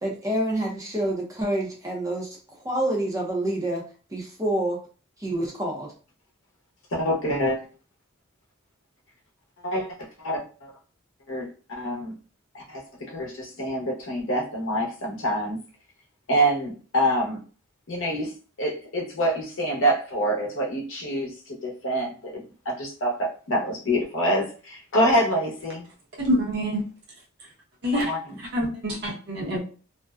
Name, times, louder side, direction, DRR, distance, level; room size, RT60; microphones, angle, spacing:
voice 1, 0.0-2.3 2.6-3.9 4.1-4.8 5.2-5.9, right 1 dB, 15° right, -1 dB, 0.5 m, -27 dB
voice 2, 6.9-7.6 9.6-9.9 10.2-10.7 11.3-12.1 12.5-15.6 16.3-17.4 17.9-18.3 18.6-25.9 27.9-28.4, equal, 65° left, -2 dB, 0.7 m, -26 dB
voice 3, 26.2-26.8 27.8-28.1 28.5-29.6, equal, 50° right, -3 dB, 0.8 m, -25 dB
2.5 x 2.1 x 2.3 m, 0.38 s
head